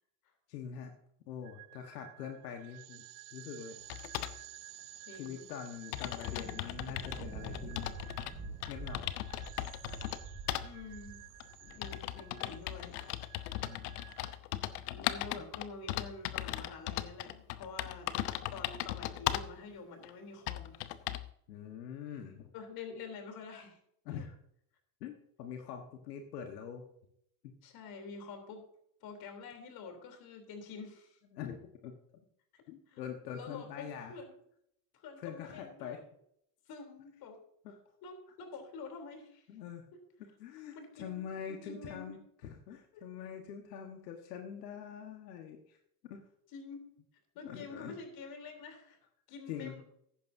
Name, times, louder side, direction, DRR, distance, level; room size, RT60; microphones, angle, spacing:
voice 1, 0.5-0.9 1.3-3.0 3.3-3.8 5.1-8.0 8.7-9.1 13.6-14.1 21.5-22.5 24.0-24.3 25.0-26.9 27.4-27.5 31.3-32.0 32.7-34.2 35.2-36.0 37.6-37.7 39.5-39.8 40.4-45.8 46.0-46.2 47.4-47.9 49.5-49.8, left 8 dB, 90° left, 3 dB, 1.5 m, -44 dB
sound 1, 1.4-14.4, right 18 dB, 45° right, 0.6 m, -54 dB
sound 2, 3.9-4.4 5.3-5.4 5.6-5.7 5.9-8.3 8.6-10.2 10.5-10.7 11.4-19.5 20.0-20.1 20.5-21.3, left 15 dB, 75° left, 0.9 m, -38 dB
voice 2, 5.1-5.5 10.6-11.2 11.8-13.0 14.9-18.1 18.5-21.0 22.5-23.8 24.1-24.3 27.6-28.6 29.0-31.2 32.5-32.6 32.9-33.0 33.3-34.3 34.9-36.0 36.7-37.4 37.7-39.5 39.9-40.0 40.8-42.1 42.9-43.1 46.5-46.9 47.4-49.0 49.3-49.8, left 4 dB, 50° left, 5 dB, 3.4 m, -47 dB
Thunder, 6.2-12.9, right 4 dB, 20° right, 2.8 m, -47 dB
15.0 x 10.5 x 2.7 m, 0.72 s
supercardioid pair, 115°, 47 cm